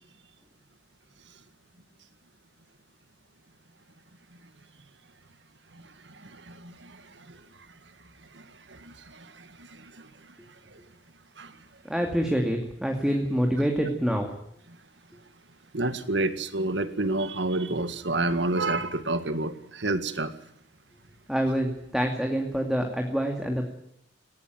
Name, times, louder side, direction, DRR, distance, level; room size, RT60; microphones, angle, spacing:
voice 1, 6.2-7.0 7.3-7.4 8.3-8.4 8.7-10.1 11.4-11.5 15.7-20.3, right 2 dB, 75° right, 11 dB, 1.9 m, -29 dB
voice 2, 11.9-14.3 21.3-23.7, equal, 5° right, 3 dB, 2.5 m, -26 dB
19.0 x 18.0 x 9.3 m, 0.76 s
head